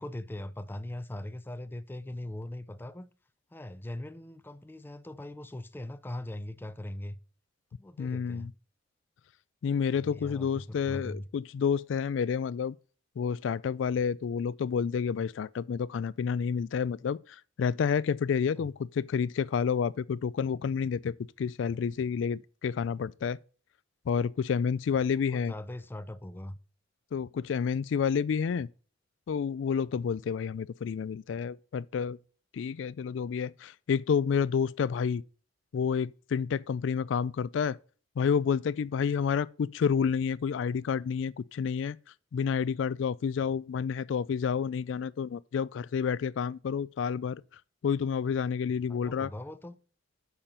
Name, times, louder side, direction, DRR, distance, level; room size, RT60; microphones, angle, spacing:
voice 1, 0.0-3.1 3.5-7.2 7.8-8.5 9.9-11.3 18.6-18.7 25.3-26.6 48.9-49.8, left 1 dB, 10° left, 0.5 m, -40 dB
voice 2, 8.0-8.5 9.6-12.7 13.2-23.4 24.1-25.5 27.1-28.7 29.3-32.2 32.5-35.2 35.7-37.8 38.2-42.0 42.3-47.4 47.8-49.3, left 6 dB, 85° left, 0.3 m, -29 dB
8.8 x 5.8 x 5.1 m
head